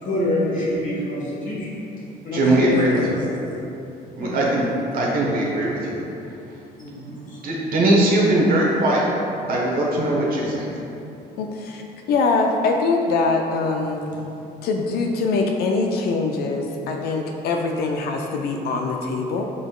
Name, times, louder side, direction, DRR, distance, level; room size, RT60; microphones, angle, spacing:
voice 1, 0.0-1.7 2.2-3.6 4.2-4.5 6.8-7.4 14.3-14.4, left 1 dB, 50° left, -6 dB, 1.3 m, -26 dB
voice 2, 2.3-3.2 4.2-4.6 4.9-6.0 7.4-9.1 9.5-10.7, right 1 dB, 60° right, -3 dB, 0.9 m, -20 dB
voice 3, 11.4-11.8 12.1-14.0 14.6-19.4, left 3 dB, 70° left, 2 dB, 0.4 m, -23 dB
4.8 x 4.0 x 2.4 m, 2.8 s
cardioid pair, 110°, 17 cm